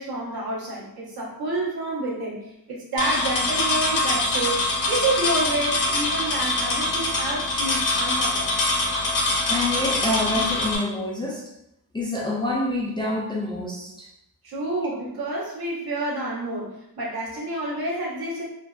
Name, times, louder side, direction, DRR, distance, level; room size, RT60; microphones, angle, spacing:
voice 1, 0.0-8.5 14.4-18.4, right 2 dB, 70° right, -6 dB, 1.0 m, -29 dB
sound 1, 3.0-10.8, left 2 dB, 55° left, 0.7 m, -24 dB
voice 2, 9.5-11.5 11.9-14.1, left 2 dB, 15° left, -4 dB, 0.3 m, -27 dB
2.5 x 2.2 x 2.2 m, 0.81 s
wide cardioid pair, 105°, 39 cm